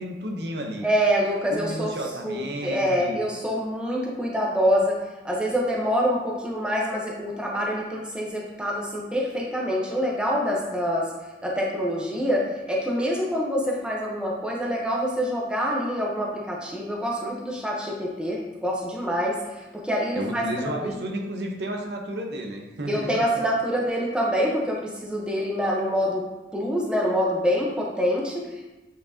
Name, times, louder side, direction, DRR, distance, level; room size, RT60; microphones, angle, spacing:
voice 1, 0.0-0.9 1.5-3.2 20.1-23.2, equal, 70° right, 2 dB, 0.8 m, -32 dB
voice 2, 0.8-1.9 2.2-5.0 5.2-11.1 11.4-21.0 22.9-26.2 26.5-28.6, equal, 5° right, -3 dB, 0.8 m, -26 dB
8.2 x 4.5 x 2.8 m, 1.1 s
head